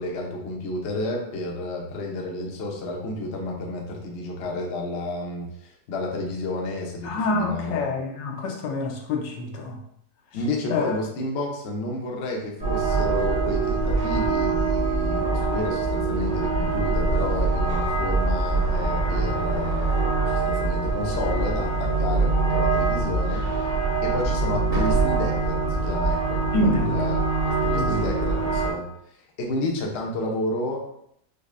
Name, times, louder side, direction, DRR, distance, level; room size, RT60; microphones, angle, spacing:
voice 1, 0.0-7.9 10.3-23.4 24.0-26.4 26.8-27.2 27.6-30.9, left 2 dB, 60° left, -1 dB, 0.7 m, -31 dB
voice 2, 7.0-9.8 10.7-10.9 26.5-26.9 27.7-27.9, left 2 dB, 85° left, 1 dB, 1.3 m, -26 dB
sound 1, 12.6-28.7, right 3 dB, 40° right, 1.1 m, -24 dB
5.2 x 2.1 x 2.4 m, 0.72 s
omnidirectional pair, 1.9 m